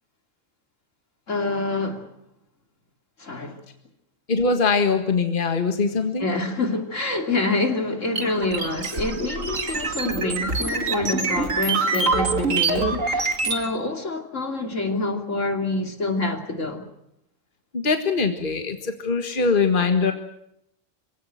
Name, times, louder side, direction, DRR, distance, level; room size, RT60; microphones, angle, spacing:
voice 1, 1.3-2.1 3.2-3.6 6.2-16.8, left 2 dB, 75° left, 3.2 m, -26 dB
voice 2, 4.3-6.3 17.7-20.1, left 4 dB, 40° left, 1.8 m, -22 dB
sound 1, 8.2-13.6, right 3 dB, 80° right, 2.6 m, -25 dB
25.5 x 17.0 x 9.2 m
omnidirectional pair, 1.3 m